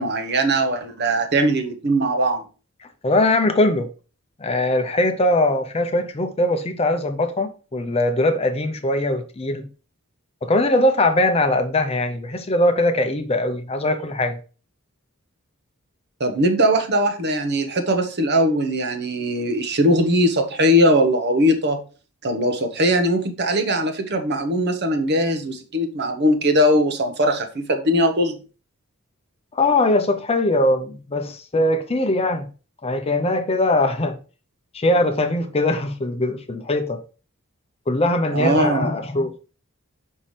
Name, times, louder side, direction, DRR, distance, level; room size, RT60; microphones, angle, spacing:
voice 1, 0.0-2.4 16.2-21.8 22.2-28.4 38.3-38.9, equal, 50° right, 1.0 m, -20 dB
voice 2, 3.0-3.9 4.4-9.7 10.4-14.4 29.5-32.5 32.8-34.2 34.7-37.0 37.9-39.4, left 1 dB, 25° left, 0.6 m, -21 dB
5.8 x 5.4 x 3.2 m
head